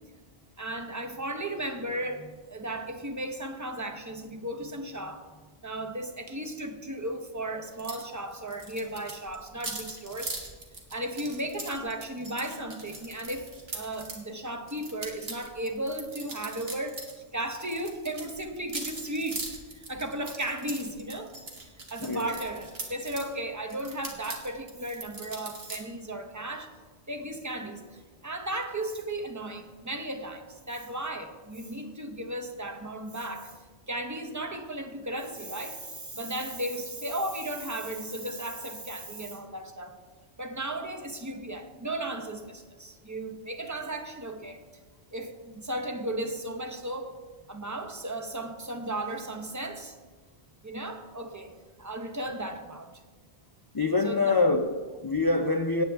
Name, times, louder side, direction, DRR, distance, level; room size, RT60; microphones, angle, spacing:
voice 1, 0.6-5.3 5.6-10.3 10.9-21.3 21.9-26.7 27.1-33.5 33.9-40.0 40.4-44.6 45.1-47.2 47.5-50.0 50.6-51.5 51.8-53.0 54.0-54.3, right 1 dB, 20° right, 0.8 m, -35 dB
sound 1, 7.8-8.1 8.3-14.2 14.7-17.1 17.4-23.3 23.7-25.8, right 2 dB, 70° right, 1.9 m, -40 dB
voice 2, 53.7-55.8, left 3 dB, 35° left, 0.3 m, -25 dB
17.5 x 9.0 x 3.4 m
omnidirectional pair, 1.1 m